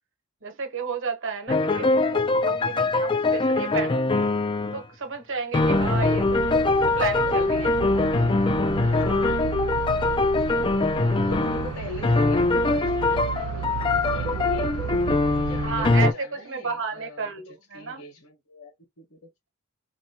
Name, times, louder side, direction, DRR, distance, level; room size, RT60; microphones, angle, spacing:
voice 1, 0.4-4.0 4.7-8.0 15.6-18.0, right 5 dB, 60° right, 1.1 m, -32 dB
sound 1, 1.5-4.8 5.5-11.8 12.0-16.1, left 3 dB, 20° left, 0.4 m, -23 dB
sound 2, 5.6-16.1, right 7 dB, 80° right, 0.5 m, -33 dB
voice 2, 7.4-8.2 8.6-9.4 10.6-10.9 11.3-14.7 15.2-17.3 17.7-19.2, left 1 dB, 60° left, 1.4 m, -42 dB
4.4 x 2.9 x 2.9 m
head